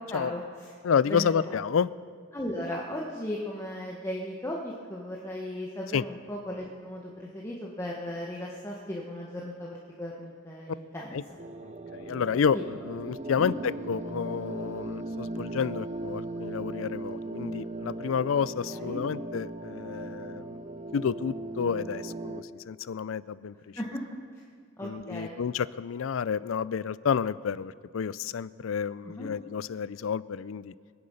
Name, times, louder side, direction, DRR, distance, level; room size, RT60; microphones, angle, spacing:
voice 1, 0.1-0.4 1.1-1.5 2.3-11.2 12.5-12.6 13.4-13.5 18.7-19.0 23.8-24.0 24.8-25.4 29.0-29.3, left 1 dB, 15° left, -2 dB, 1.2 m, -36 dB
voice 2, 0.8-1.9 5.9-6.0 11.1-11.2 11.9-20.4 20.9-23.5 24.8-30.7, left 6 dB, 85° left, 19 dB, 0.4 m, -30 dB
sound 1, 11.4-22.4, right 2 dB, 35° right, 0.7 m, -38 dB
23.5 x 9.8 x 5.6 m, 2.1 s
head